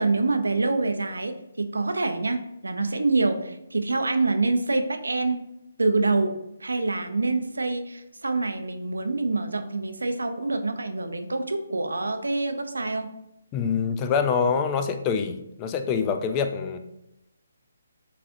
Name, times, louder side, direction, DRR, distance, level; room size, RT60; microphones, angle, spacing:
voice 1, 0.0-5.4 5.8-6.3 6.6-13.1, right 3 dB, 80° right, 7 dB, 0.5 m, -26 dB
voice 2, 13.5-16.8, left 6 dB, 25° left, 7 dB, 0.4 m, -25 dB
6.9 x 2.5 x 2.6 m, 0.88 s
figure-of-eight pair, 145°, 0 cm